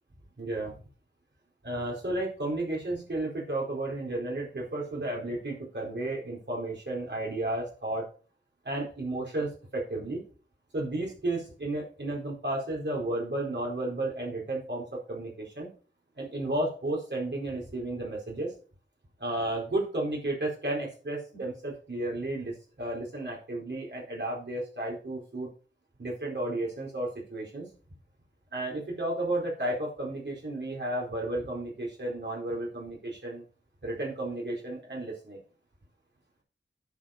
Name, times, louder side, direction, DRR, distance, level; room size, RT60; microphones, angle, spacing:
voice 1, 0.4-0.7 1.6-8.1 8.6-10.2 10.7-15.7 16.2-18.5 19.2-25.5 26.0-27.7 28.5-33.4 33.8-35.4, right 1 dB, 65° right, -4 dB, 4.5 m, -33 dB
10.5 x 5.3 x 5.2 m, 0.38 s
wide cardioid pair, 55°, 20 cm